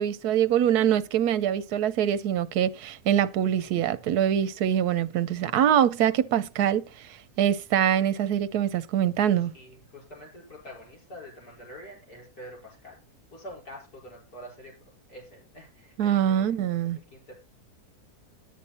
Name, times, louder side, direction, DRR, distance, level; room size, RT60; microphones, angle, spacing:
voice 1, 0.0-6.9 7.4-9.5 16.0-17.0, right 10 dB, 80° right, 1.2 m, -24 dB
voice 2, 9.3-13.0 13.3-14.7 15.1-16.6 16.9-17.3, equal, 80° left, 5.5 m, -46 dB
9.9 x 9.5 x 4.2 m
omnidirectional pair, 1.6 m